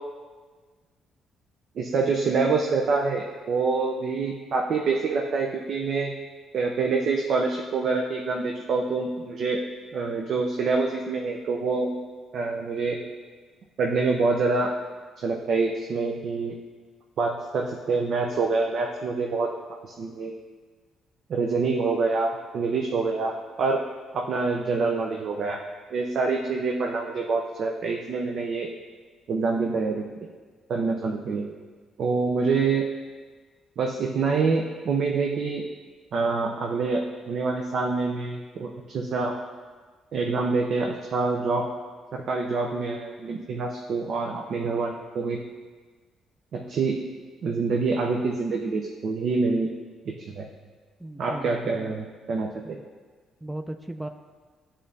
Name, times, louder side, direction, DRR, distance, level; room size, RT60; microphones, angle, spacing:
voice 1, 1.8-6.2 6.5-9.6 9.9-11.9 12.3-13.0 13.8-14.7 15.2-16.5 17.2-19.5 19.8-20.3 21.3-23.8 24.1-25.6 25.9-28.7 29.3-30.0 30.7-31.5 32.0-32.8 33.8-35.6 36.1-39.3 40.1-41.7 42.1-45.4 46.5-47.1 47.4-49.7 50.0-50.5 51.2-52.8, right 4 dB, 65° right, 1 dB, 0.6 m, -26 dB
voice 2, 51.0-51.9 52.6-52.9 53.4-54.1, right 1 dB, 10° right, 6 dB, 0.4 m, -37 dB
10.5 x 3.7 x 2.7 m, 1.4 s
supercardioid pair, 60°, 0 cm